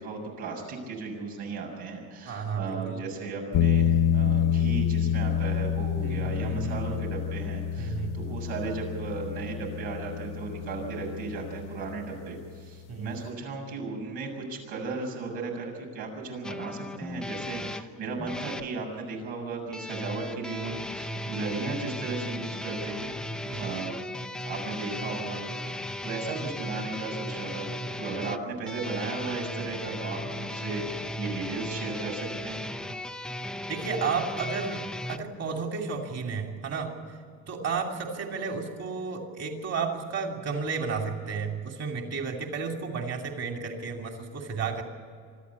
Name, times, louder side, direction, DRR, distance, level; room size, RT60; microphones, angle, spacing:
voice 1, 0.0-23.1 23.6-24.0 24.4-25.7 26.0-32.6, right 3 dB, 85° right, 1 dB, 7.0 m, -35 dB
voice 2, 2.3-3.0 6.0-7.0 7.8-8.1 12.9-13.1 23.4-23.7 33.7-34.8 35.1-36.9 37.5-44.8, right 5 dB, 40° right, 3 dB, 2.9 m, -32 dB
sound 1, 3.5-12.5, left 9 dB, 60° left, 0.8 m, -28 dB
sound 2, 16.4-18.7 19.7-35.2, left 1 dB, ahead, 0.6 m, -36 dB
25.0 x 13.5 x 8.4 m, 2.2 s
cardioid pair, 135°, 38 cm